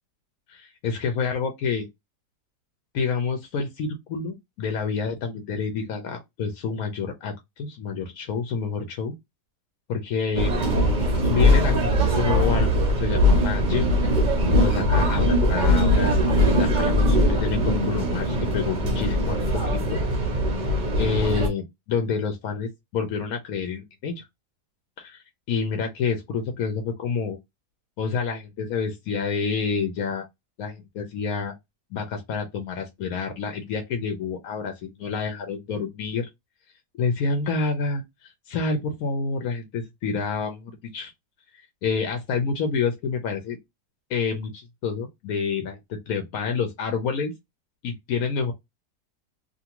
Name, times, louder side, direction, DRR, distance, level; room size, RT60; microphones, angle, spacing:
voice 1, 0.5-1.9 2.9-9.1 9.9-10.6 11.3-13.9 14.5-20.0 21.0-24.2 25.0-27.4 28.0-30.2 30.6-31.5 31.9-34.7 35.0-36.3 37.0-41.1 41.8-43.6 44.1-47.3 47.8-48.5, left 5 dB, 65° left, 1.0 m, -28 dB
sound 1, 10.3-21.5, equal, 45° right, 0.6 m, -21 dB
2.6 x 2.6 x 2.9 m
omnidirectional pair, 1.8 m